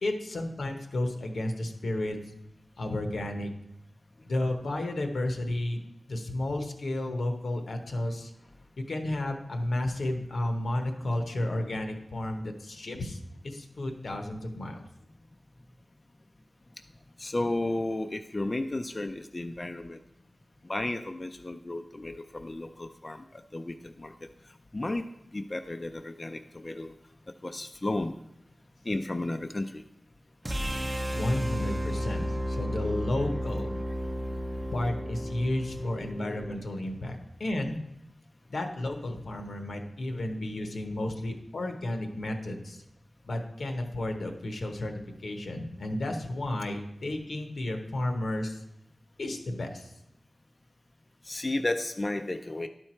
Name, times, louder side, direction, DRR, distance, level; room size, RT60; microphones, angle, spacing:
voice 1, 0.0-2.2 2.8-3.5 4.2-5.8 6.1-8.3 8.8-13.2 13.4-14.8 31.1-33.8 34.7-37.8 38.5-42.8 43.2-48.6 49.2-49.9, left 1 dB, 80° left, 4 dB, 0.9 m, -32 dB
voice 2, 17.2-20.0 20.6-24.3 24.7-25.0 25.3-26.9 27.4-28.1 28.8-29.8 34.0-34.7 51.2-52.7, left 2 dB, 30° left, 6 dB, 0.4 m, -33 dB
sound 1, 30.5-36.6, equal, 25° right, 0.6 m, -33 dB
11.0 x 4.5 x 4.3 m, 0.81 s
wide cardioid pair, 80°, 0 cm